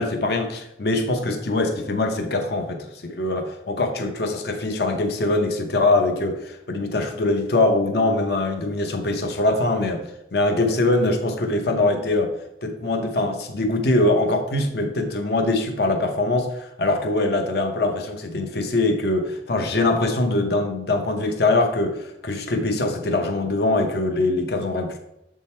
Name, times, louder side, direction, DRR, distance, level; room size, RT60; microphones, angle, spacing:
voice 1, 0.0-10.0 10.3-12.3 12.6-25.0, left 2 dB, 60° left, 5 dB, 0.7 m, -23 dB
7.2 x 3.7 x 4.2 m, 0.83 s
head